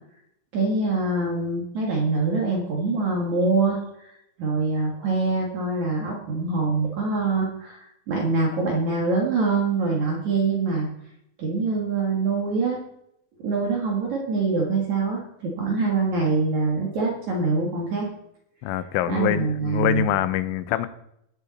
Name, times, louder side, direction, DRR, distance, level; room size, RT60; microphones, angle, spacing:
voice 1, 0.5-4.1 4.4-10.9 11.4-12.8 13.4-18.1 19.1-20.1, right 3 dB, 55° right, -2 dB, 2.1 m, -24 dB
voice 2, 18.6-20.9, left 13 dB, 85° left, 13 dB, 3.3 m, -24 dB
19.0 x 7.0 x 4.1 m, 0.77 s
omnidirectional pair, 5.5 m